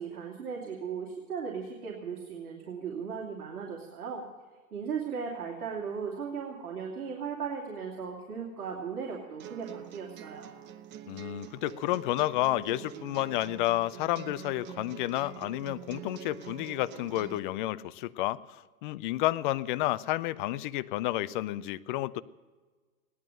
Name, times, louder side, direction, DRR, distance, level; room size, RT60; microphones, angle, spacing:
voice 1, 0.0-4.3 4.7-10.5, right 6 dB, 75° right, -2 dB, 2.9 m, -37 dB
sound 1, 9.4-17.4, right 10 dB, 25° right, 0.8 m, -45 dB
voice 2, 11.1-22.2, left 15 dB, 35° left, 15 dB, 0.5 m, -31 dB
17.0 x 11.0 x 6.5 m, 1.4 s
hypercardioid pair, 125°, 45 cm